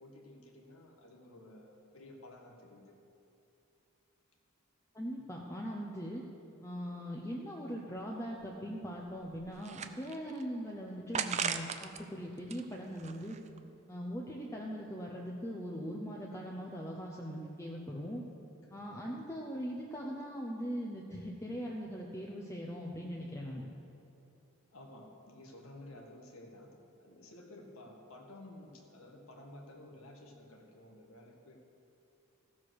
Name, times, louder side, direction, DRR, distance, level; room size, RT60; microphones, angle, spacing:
voice 1, 0.0-3.0 18.6-19.2 24.7-31.6, left 1 dB, 70° left, 1 dB, 1.6 m, -53 dB
voice 2, 4.9-6.2 6.6-13.4 13.9-18.2 18.7-23.7, equal, 15° left, -2 dB, 0.8 m, -40 dB
sound 1, 8.0-8.1 8.4-8.5 9.1-10.4 11.1-12.0 12.4-13.6, right 7 dB, 30° right, 0.5 m, -38 dB
15.5 x 7.3 x 6.4 m, 2.9 s
head